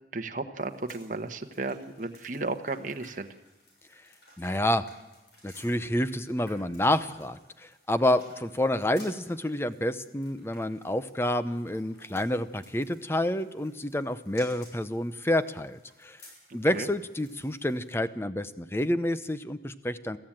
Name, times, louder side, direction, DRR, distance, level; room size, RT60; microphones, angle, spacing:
voice 1, 0.1-3.3 16.5-16.9, right 3 dB, 45° right, 6 dB, 1.2 m, -34 dB
sound 1, 0.6-18.0, left 1 dB, 70° left, 7.3 m, -57 dB
voice 2, 4.4-4.8 5.4-16.2 16.5-20.2, left 1 dB, 15° left, 12 dB, 0.7 m, -28 dB
22.0 x 14.5 x 8.9 m, 1.1 s
head